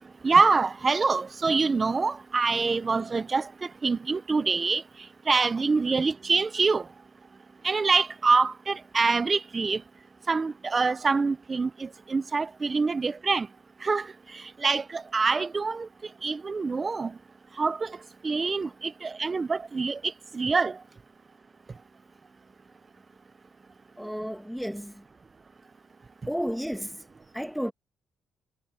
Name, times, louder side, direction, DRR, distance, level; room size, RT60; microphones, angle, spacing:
voice 1, 0.2-3.5 3.8-4.8 5.3-6.8 7.6-9.8 10.3-13.5 13.8-14.1 14.6-15.9 16.2-17.1 17.6-18.0 18.2-20.8, right 4 dB, 30° right, 0.7 m, -25 dB
voice 2, 24.0-25.0 26.3-26.9 27.3-27.7, equal, ahead, 1.9 m, -32 dB
cardioid pair, 90°, 0 cm